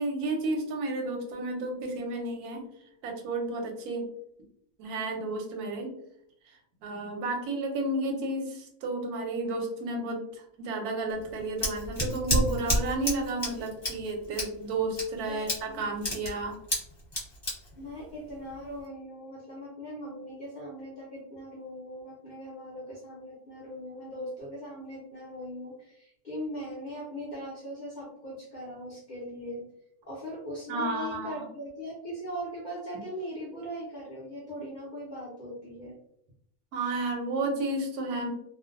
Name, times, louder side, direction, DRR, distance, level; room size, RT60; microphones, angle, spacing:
voice 1, 0.0-2.6 3.0-4.1 4.8-5.9 6.5-16.6 30.7-31.5 36.7-38.3, right 2 dB, 90° right, 3 dB, 1.1 m, -32 dB
Scissors, 11.1-18.8, equal, 20° left, 0.9 m, -32 dB
voice 2, 15.3-15.9 17.7-29.6 30.0-35.9, equal, 55° left, -6 dB, 0.5 m, -40 dB
2.5 x 2.2 x 2.4 m, 0.72 s
omnidirectional pair, 1.5 m